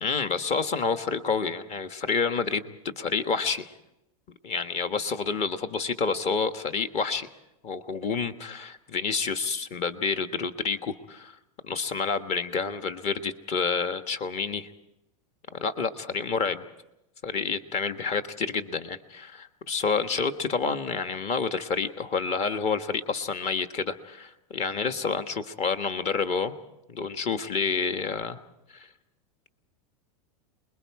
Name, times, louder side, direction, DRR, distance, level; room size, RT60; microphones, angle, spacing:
voice 1, 0.0-3.7 4.4-7.3 7.6-11.3 11.6-14.7 15.5-16.6 17.2-26.5 26.9-28.4 28.7-28.9, left 5 dB, 35° left, 8 dB, 1.4 m, -29 dB
28.5 x 21.5 x 4.8 m, 0.90 s
supercardioid pair, 130°, 19 cm